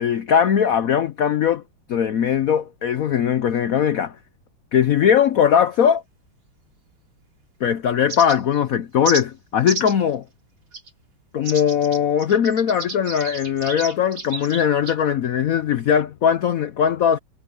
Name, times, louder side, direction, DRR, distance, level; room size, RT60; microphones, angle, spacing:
voice 1, 0.0-1.6 1.9-4.2 4.7-6.0 7.6-10.2 11.3-17.2, left 8 dB, 85° left, 0.7 m, -20 dB
sound 1, 8.1-8.6 9.0-9.2 9.7-10.0 10.7-10.9 11.4-15.0, right 3 dB, 85° right, 6.2 m, -32 dB
omnidirectional pair, 2.4 m